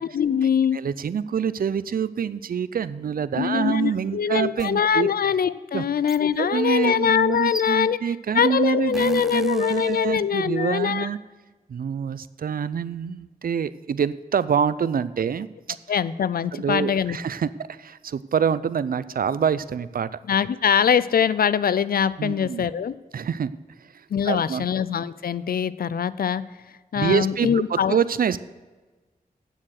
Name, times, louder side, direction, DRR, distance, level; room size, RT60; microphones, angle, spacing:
voice 1, 0.0-0.8 3.3-8.0 8.3-11.1 15.9-17.2 20.3-23.0 24.1-26.4 26.9-28.0, left 8 dB, 75° left, 17 dB, 0.4 m, -23 dB
voice 2, 0.7-5.1 5.7-5.8 6.4-11.2 11.7-15.5 16.5-20.1 22.2-22.7 23.1-23.5 24.3-24.7 26.9-28.4, right 7 dB, 70° right, 16 dB, 0.5 m, -26 dB
sound 1, 4.6-4.7 6.1-6.2 7.3-8.1 8.9-10.2, equal, ahead, 0.4 m, -39 dB
9.1 x 7.3 x 6.4 m, 1.3 s
cardioid pair, 50°, 16 cm